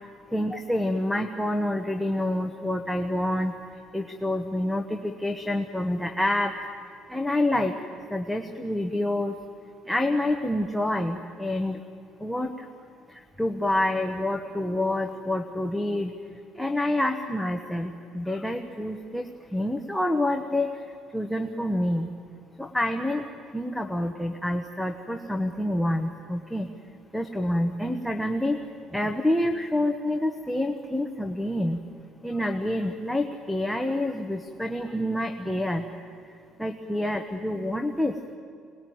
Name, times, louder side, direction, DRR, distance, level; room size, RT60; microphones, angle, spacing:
voice 1, 0.3-6.5 7.1-7.7 8.1-9.4 9.8-11.8 12.2-12.7 13.1-16.1 16.5-22.1 22.6-23.2 23.5-26.7 27.1-28.6 28.9-31.8 32.2-35.9 36.2-38.1, left 1 dB, ahead, 3 dB, 1.1 m, -27 dB
25.5 x 20.0 x 9.4 m, 2.3 s
cardioid pair, 140°, 0 cm